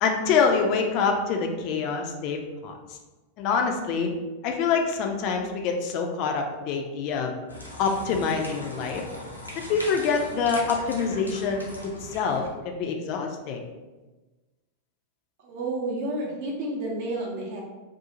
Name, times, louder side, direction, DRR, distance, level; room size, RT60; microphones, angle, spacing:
voice 1, 0.0-2.7 3.4-4.1 4.4-7.3 7.8-9.0 9.7-13.6, left 5 dB, 40° left, 3 dB, 0.3 m, -26 dB
sound 1, 7.5-12.5, left 1 dB, 90° left, 0.6 m, -40 dB
voice 2, 15.4-17.6, right 2 dB, 50° right, -2 dB, 0.7 m, -30 dB
2.5 x 2.0 x 2.8 m, 1.2 s
figure-of-eight pair, 90°, 0 cm